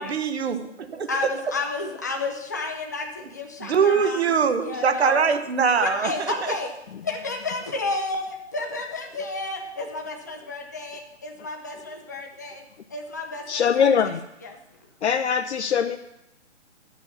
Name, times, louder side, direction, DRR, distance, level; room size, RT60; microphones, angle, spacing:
voice 1, 0.0-1.1 3.6-6.1 6.4-6.5, right 6 dB, 60° right, 10 dB, 1.0 m, -22 dB
voice 2, 1.1-4.2 4.6-5.2 5.7-6.7 7.0-12.6 12.9-14.2 14.4-14.6, left 3 dB, 15° left, 2 dB, 0.5 m, -31 dB
voice 3, 13.5-14.2 15.0-16.0, left 7 dB, 65° left, 7 dB, 0.6 m, -22 dB
11.0 x 7.0 x 5.5 m, 0.87 s
hypercardioid pair, 155°, 36 cm